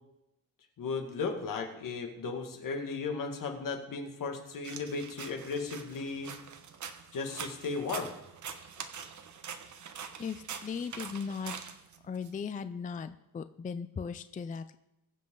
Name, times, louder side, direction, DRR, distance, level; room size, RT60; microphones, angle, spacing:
voice 1, 0.8-6.3 7.1-8.1, left 4 dB, 65° left, 4 dB, 2.0 m, -35 dB
sound 1, 4.6-12.3, right 7 dB, 55° right, 1.1 m, -44 dB
voice 2, 10.2-11.6 12.0-14.7, left 6 dB, 25° left, 11 dB, 0.4 m, -38 dB
21.5 x 7.6 x 3.8 m, 0.88 s
wide cardioid pair, 165°, 35 cm